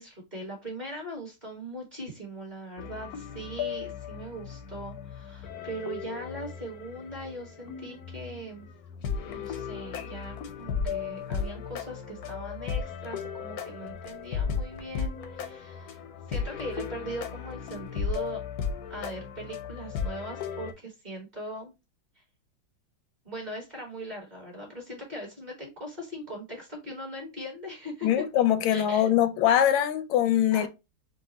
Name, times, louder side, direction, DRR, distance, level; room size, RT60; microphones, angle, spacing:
voice 1, 0.0-8.6 9.2-16.0 16.3-18.4 18.9-21.7 23.2-28.1 28.7-29.1 30.5-30.7, right 1 dB, 25° right, 1.3 m, -40 dB
sound 1, 2.8-20.7, left 6 dB, 70° left, 1.0 m, -35 dB
voice 2, 28.0-30.7, left 10 dB, 85° left, 1.3 m, -23 dB
4.1 x 2.4 x 3.8 m
omnidirectional pair, 2.1 m